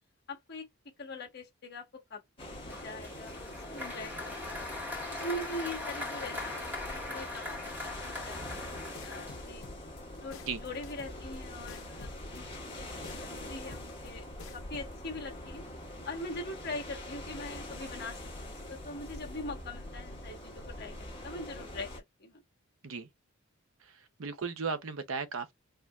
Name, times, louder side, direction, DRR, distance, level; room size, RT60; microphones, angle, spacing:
voice 1, 0.3-0.7 1.0-3.3 3.7-4.5 5.2-8.6 9.0-9.6 10.1-14.3 14.5-15.6 16.0-21.9 22.2-22.4, left 1 dB, 50° left, 1.2 m, -42 dB
sound 1, 2.4-22.0, left 1 dB, 25° left, 1.4 m, -44 dB
Applause, 2.7-9.8, left 2 dB, 10° right, 1.6 m, -40 dB
sound 2, 8.9-14.9, left 4 dB, 65° left, 0.7 m, -50 dB
voice 2, 23.8-25.5, right 5 dB, 70° right, 0.7 m, -36 dB
4.3 x 2.7 x 2.3 m
head